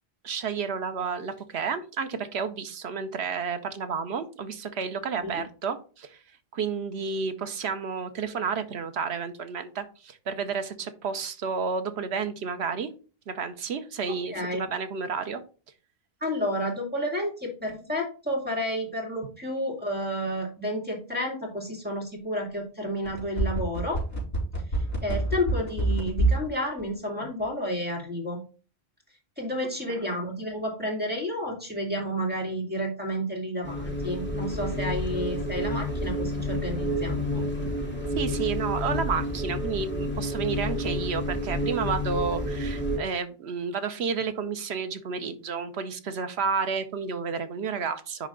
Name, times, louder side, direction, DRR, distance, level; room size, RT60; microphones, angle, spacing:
voice 1, 0.2-6.2 6.5-12.9 13.3-15.4 29.9-30.0 38.2-48.3, right 5 dB, 85° right, 9 dB, 1.1 m, -31 dB
voice 2, 14.1-14.6 16.2-24.0 24.7-28.4 29.4-37.5, equal, 10° right, -1 dB, 2.2 m, -31 dB
sound 1, 23.1-26.5 26.8-26.9, right 2 dB, 70° left, 3.7 m, -25 dB
sound 2, 33.6-43.0, equal, 10° left, 1.9 m, -30 dB
10.0 x 3.3 x 3.8 m, 0.37 s
omnidirectional pair, 1.1 m